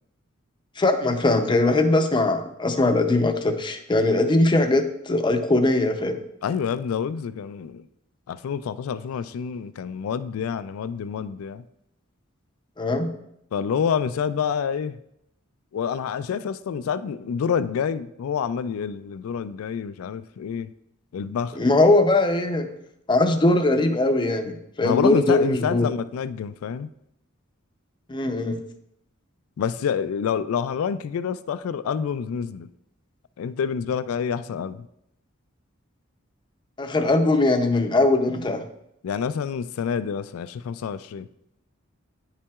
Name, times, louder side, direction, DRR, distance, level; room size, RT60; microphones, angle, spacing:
voice 1, 0.8-6.2 12.8-13.1 21.5-22.7 23.1-25.9 28.1-28.6 36.8-38.7, left 2 dB, 20° left, 7 dB, 0.5 m, -21 dB
voice 2, 6.4-7.9 8.3-11.6 13.5-15.0 15.7-20.7 21.1-21.6 24.8-26.9 29.6-32.7 33.4-34.9 39.0-41.3, left 7 dB, 85° left, 15 dB, 0.3 m, -27 dB
9.7 x 5.7 x 2.3 m, 0.78 s
head